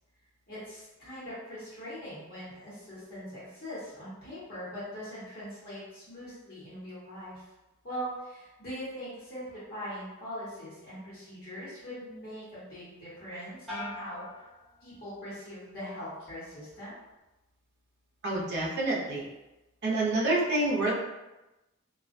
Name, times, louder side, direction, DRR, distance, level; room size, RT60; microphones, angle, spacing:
voice 1, 0.5-7.4 7.8-14.5 14.8-17.0, equal, 45° left, -10 dB, 1.1 m, -41 dB
sound 1, 13.7-15.4 15.8-16.4, left 2 dB, ahead, 0.7 m, -44 dB
voice 2, 18.2-19.3 19.8-20.9, right 2 dB, 50° right, -5 dB, 0.6 m, -27 dB
2.3 x 2.2 x 2.5 m, 1.0 s
head